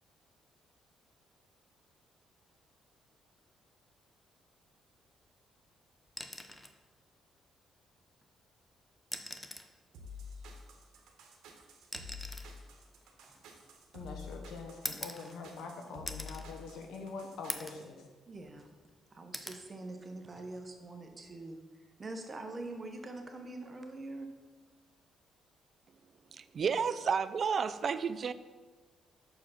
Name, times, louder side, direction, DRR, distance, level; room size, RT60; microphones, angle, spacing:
sound 1, 6.1-6.8 8.2-8.3 9.0-9.8 11.0-14.0 14.8-15.7 16.1-16.5 16.9-17.0 17.5-17.9 18.3-18.9 19.3-19.7 21.1-21.3, left 1 dB, 15° left, 0.6 m, -43 dB
sound 2, 9.9-17.9, left 4 dB, 85° right, 1.0 m, -49 dB
voice 1, 13.9-18.0, left 4 dB, 80° left, 3 dB, 1.1 m, -44 dB
voice 2, 18.3-18.7 19.1-21.6 22.0-24.4, right 2 dB, 30° right, 5 dB, 0.9 m, -44 dB
voice 3, 26.3-28.3, right 6 dB, 50° right, 14 dB, 0.4 m, -31 dB
6.4 x 4.7 x 5.6 m, 1.3 s
cardioid pair, 90°, 0 cm